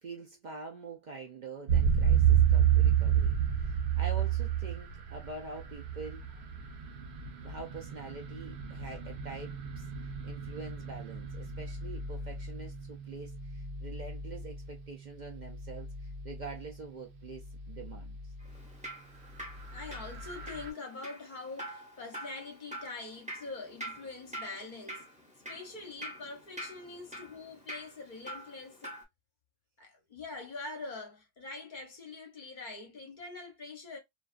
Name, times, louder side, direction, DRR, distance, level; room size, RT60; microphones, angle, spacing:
voice 1, 0.0-6.2 7.4-9.9 10.2-18.2, right 4 dB, 55° right, 0.6 m, -45 dB
sound 1, 1.7-18.7 19.1-20.7, right 8 dB, 85° right, 0.9 m, -31 dB
Drip, 18.4-29.0, equal, 10° right, 0.7 m, -46 dB
voice 2, 19.7-25.1 25.5-28.9 29.8-34.0, left 3 dB, 50° left, 0.8 m, -44 dB
2.4 x 2.3 x 2.3 m
omnidirectional pair, 1.1 m